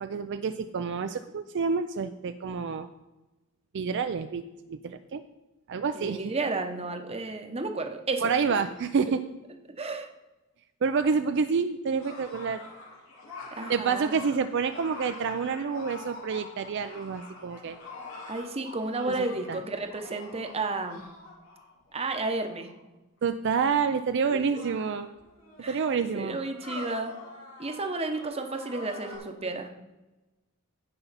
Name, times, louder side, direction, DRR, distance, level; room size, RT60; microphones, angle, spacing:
voice 1, 0.0-2.9 3.7-5.2 5.7-6.3 8.2-9.2 10.8-12.6 13.7-17.8 19.5-19.6 23.2-25.1 25.7-26.4, right 5 dB, 55° right, 9 dB, 0.4 m, -28 dB
voice 2, 5.9-8.3 9.8-10.1 13.5-14.1 18.3-21.1 21.9-22.7 24.3-24.6 25.6-25.9 26.1-27.1 27.6-29.7, right 3 dB, 30° right, 6 dB, 0.8 m, -32 dB
sound 1, 12.0-22.8 23.7-23.8 24.4-29.2, left 2 dB, 70° left, 3.0 m, -45 dB
15.5 x 5.5 x 4.1 m, 1.1 s
head